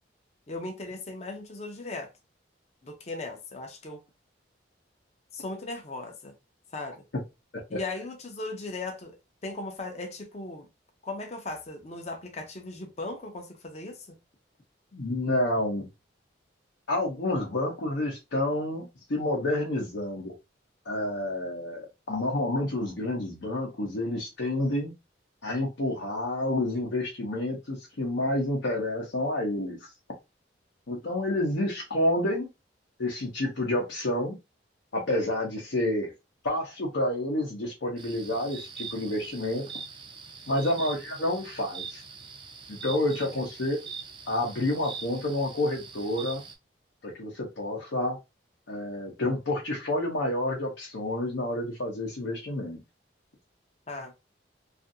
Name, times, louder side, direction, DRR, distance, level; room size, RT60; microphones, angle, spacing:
voice 1, 0.5-2.1 2.8-4.0 5.3-6.3 6.7-7.0 7.7-9.2 9.4-10.7 11.0-14.2 43.3-43.4 53.9-54.1, left 2 dB, 35° left, 0.5 m, -37 dB
voice 2, 14.9-15.9 16.9-20.3 20.9-24.9 25.4-29.8 30.9-32.5 33.0-34.4 34.9-36.1 36.4-39.6 40.5-42.0 42.7-43.8 44.3-46.4 47.0-48.2 48.7-52.8, left 1 dB, 75° left, 0.7 m, -29 dB
sound 1, 38.0-46.5, right 5 dB, 25° right, 0.4 m, -43 dB
2.6 x 2.5 x 2.6 m
head